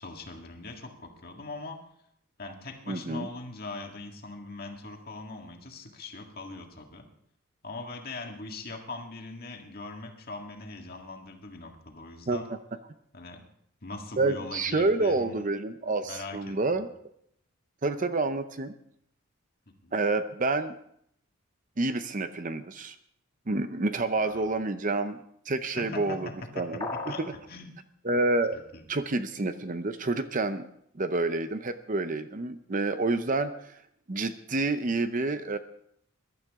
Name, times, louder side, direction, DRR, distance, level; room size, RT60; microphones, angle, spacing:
voice 1, 0.0-1.8 2.4-7.0 7.6-12.5 13.1-13.4 13.8-15.4 16.0-16.8 19.7-20.0 24.2-24.6 25.7-27.7 28.1-28.2 28.5-28.8, left 3 dB, 45° left, 2 dB, 1.9 m, -41 dB
voice 2, 2.9-3.3 12.3-12.4 14.2-16.9 17.8-18.7 19.9-20.8 21.8-22.9 23.5-25.2 25.5-26.3 26.6-27.3 28.0-28.6 28.9-30.7 30.9-33.8 34.1-35.6, right 2 dB, 35° right, 10 dB, 0.6 m, -28 dB
sound 1, 26.8-27.4, left 3 dB, 20° left, 1.3 m, -35 dB
21.5 x 12.0 x 3.6 m, 0.71 s
head